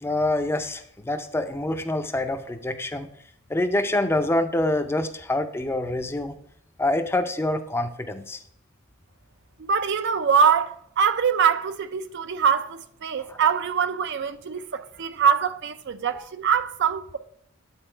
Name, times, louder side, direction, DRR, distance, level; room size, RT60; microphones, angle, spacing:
voice 1, 0.0-3.1 3.5-6.3 6.8-8.4 13.2-13.4 16.1-16.2, left 1 dB, 10° left, 0.5 m, -26 dB
voice 2, 9.7-17.2, right 7 dB, 55° right, 0.4 m, -23 dB
8.8 x 4.1 x 4.4 m
head